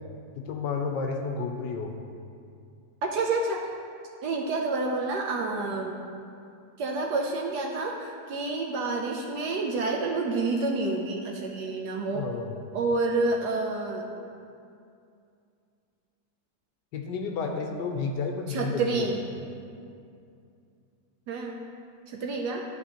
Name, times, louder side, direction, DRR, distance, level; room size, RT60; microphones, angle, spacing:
voice 1, 0.4-2.0 12.1-12.6 16.9-19.0, left 4 dB, 75° left, 3 dB, 1.1 m, -31 dB
voice 2, 3.1-3.7 4.2-6.0 6.8-12.2 12.7-14.1 18.5-19.2 21.3-21.6 22.1-22.6, right 3 dB, 70° right, 1 dB, 1.0 m, -28 dB
12.5 x 4.2 x 2.9 m, 2.4 s
omnidirectional pair, 2.1 m